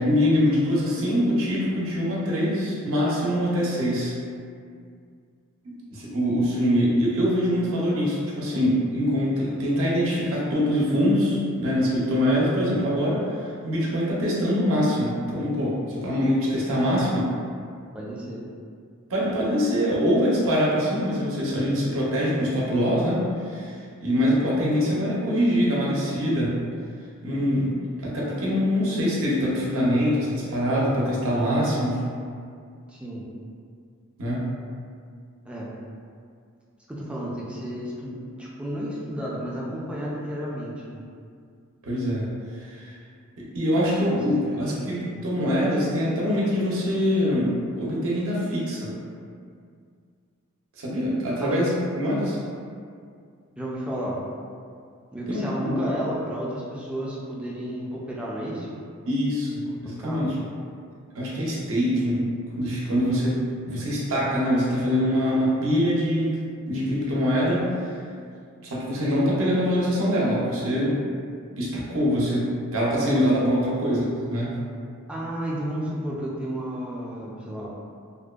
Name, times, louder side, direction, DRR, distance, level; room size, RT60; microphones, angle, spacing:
voice 1, 0.0-4.2 5.6-17.3 19.1-23.7 24.0-26.6 27.2-32.1 34.2-34.5 41.8-42.3 42.6-42.9 43.4-48.9 50.8-52.4 55.3-55.8 59.1-60.3 61.1-62.2 62.6-66.4 66.7-67.9 68.6-71.0 71.6-74.6, equal, 65° right, -6 dB, 0.5 m, -24 dB
voice 2, 17.9-18.4 32.9-33.2 35.4-35.7 36.9-41.0 44.5-45.0 51.4-51.6 53.6-54.2 55.1-58.7 59.9-60.3 75.1-77.7, equal, 5° right, -6 dB, 0.3 m, -32 dB
2.5 x 2.1 x 2.3 m, 2.2 s
head